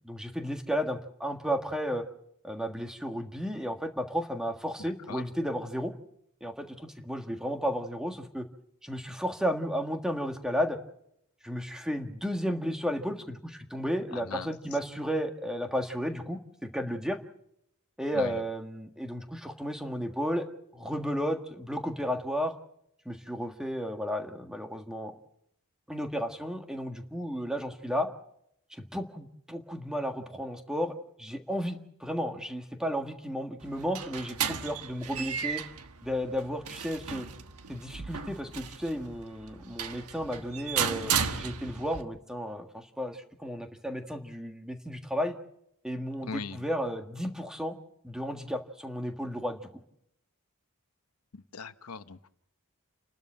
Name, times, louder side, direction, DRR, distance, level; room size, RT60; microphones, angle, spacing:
voice 1, 0.0-2.0 2.4-5.9 6.4-8.5 8.8-10.8 11.4-17.2 18.0-20.5 20.7-22.5 23.0-25.1 25.9-28.1 28.7-30.9 31.2-35.6 36.0-37.3 37.7-45.3 45.8-47.8 48.0-49.6, equal, 5° right, 5 dB, 1.6 m, -33 dB
voice 2, 4.8-5.2 14.1-14.5 18.1-18.4 46.2-46.6 51.3-52.3, left 5 dB, 80° left, 11 dB, 0.9 m, -40 dB
sound 1, 33.6-42.0, right 7 dB, 85° right, 1.4 m, -35 dB
30.0 x 12.5 x 7.5 m, 0.75 s
head